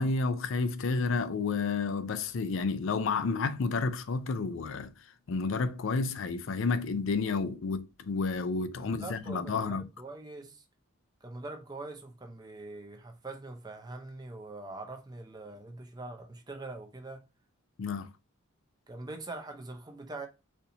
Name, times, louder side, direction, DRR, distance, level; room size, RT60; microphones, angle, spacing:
voice 1, 0.0-4.9 5.3-9.9 17.8-18.1, left 4 dB, 65° left, 0.4 m, -30 dB
voice 2, 8.8-10.6 11.2-17.2 18.9-20.3, right 2 dB, 20° right, 0.6 m, -43 dB
4.3 x 2.7 x 2.6 m
head